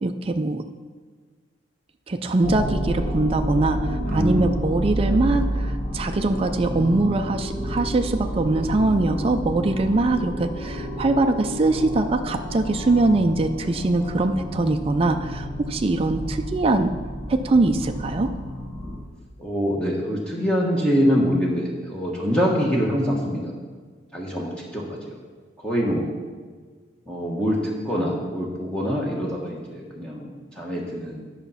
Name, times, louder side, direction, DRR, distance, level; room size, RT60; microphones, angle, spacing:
voice 1, 0.0-0.6 2.1-16.9 17.3-18.3, right 2 dB, 30° right, 6 dB, 0.4 m, -22 dB
sound 1, 2.4-19.0, equal, 35° left, 1.5 m, -29 dB
voice 2, 4.0-4.5 4.9-5.2 19.4-23.5 24.1-25.2 25.6-26.1 27.1-30.3 30.6-31.3, equal, 5° left, -4 dB, 1.2 m, -24 dB
10.5 x 5.8 x 5.6 m, 1.5 s
head